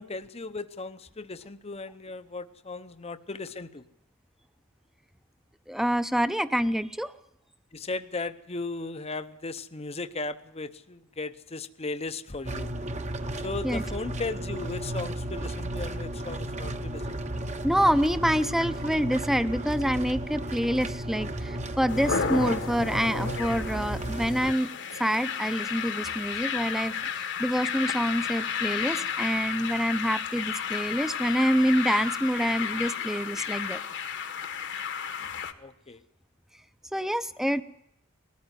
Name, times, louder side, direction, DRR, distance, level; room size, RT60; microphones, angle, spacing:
voice 1, 0.0-3.8 7.7-12.7 13.4-17.2 35.6-36.0, left 3 dB, 30° left, 11 dB, 0.8 m, -36 dB
voice 2, 5.7-7.1 13.6-13.8 17.6-24.7 25.0-33.8 36.9-37.6, equal, ahead, 12 dB, 0.7 m, -27 dB
sound 1, 12.4-24.5, right 1 dB, 35° right, 1.0 m, -34 dB
sound 2, 21.9-35.5, left 7 dB, 55° left, 1.3 m, -32 dB
20.5 x 14.0 x 9.8 m, 0.81 s
head